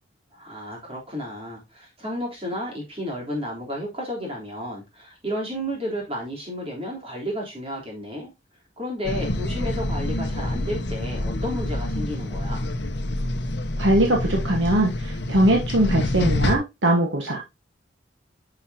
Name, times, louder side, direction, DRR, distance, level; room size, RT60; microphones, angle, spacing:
voice 1, 0.3-8.3 8.8-12.7, equal, 30° right, 3.6 m, -32 dB
sound 1, 9.0-16.5, left 1 dB, 65° left, 0.9 m, -27 dB
voice 2, 13.8-17.4, right 1 dB, 75° right, 1.4 m, -21 dB
10.0 x 5.7 x 2.8 m
head